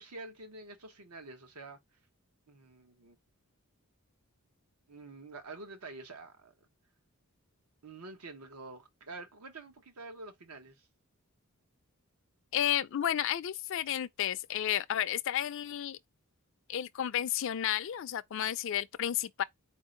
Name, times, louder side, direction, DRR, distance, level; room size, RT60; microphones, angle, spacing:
voice 1, 0.0-1.8 2.5-3.2 4.9-6.5 7.8-10.9, right 3 dB, 85° right, 1.0 m, -47 dB
voice 2, 12.5-16.0 16.7-19.4, left 10 dB, 55° left, 0.3 m, -32 dB
4.3 x 2.7 x 3.8 m
head